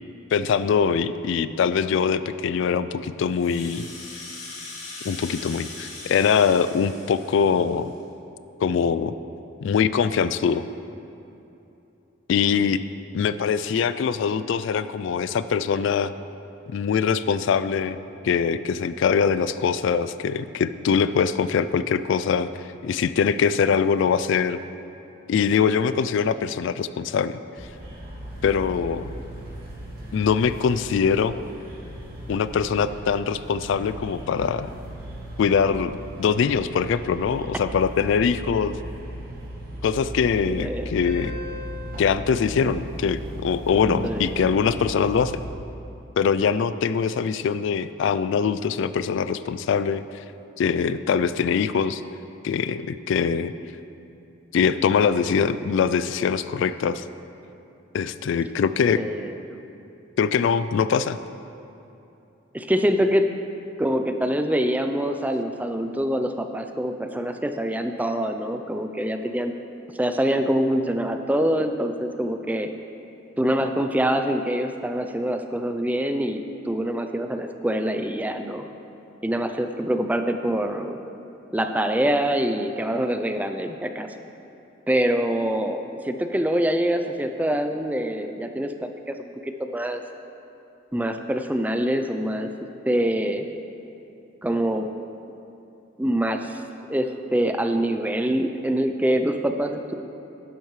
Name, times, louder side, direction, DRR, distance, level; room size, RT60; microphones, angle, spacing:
voice 1, 0.3-3.8 5.0-7.9 8.6-9.1 9.6-10.7 12.3-12.8 13.1-16.1 16.7-18.0 18.2-22.5 22.8-24.6 25.3-27.4 28.4-29.0 30.1-31.4 32.3-34.7 35.4-35.9 36.2-38.7 39.8-41.4 42.0-45.4 46.2-50.0 50.6-52.0 52.4-53.5 54.5-57.0 57.9-59.0 60.2-61.2, left 6 dB, 65° left, 13 dB, 0.3 m, -23 dB
Rattle (instrument), 3.2-8.0, left 3 dB, 90° left, 2.5 m, -40 dB
sound 1, 27.6-45.5, equal, 50° right, 2.3 m, -37 dB
voice 2, 40.5-40.9 44.0-44.3 58.9-59.5 62.5-63.3 63.8-69.5 70.0-72.7 73.4-78.6 79.2-81.0 81.5-84.1 84.9-88.9 89.2-90.0 90.9-92.5 92.9-93.5 94.4-94.9 96.0-96.6 96.9-100.0, right 1 dB, 10° right, 6 dB, 0.4 m, -25 dB
12.0 x 10.5 x 3.2 m, 2.9 s
head